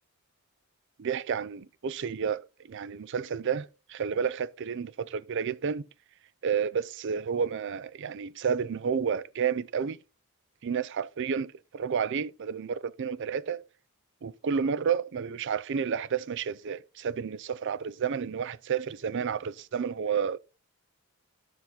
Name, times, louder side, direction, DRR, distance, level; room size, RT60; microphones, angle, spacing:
voice 1, 1.0-5.9 6.4-10.0 10.6-13.6 14.2-20.4, right 6 dB, 55° right, 0.4 m, -31 dB
10.5 x 5.8 x 3.9 m
head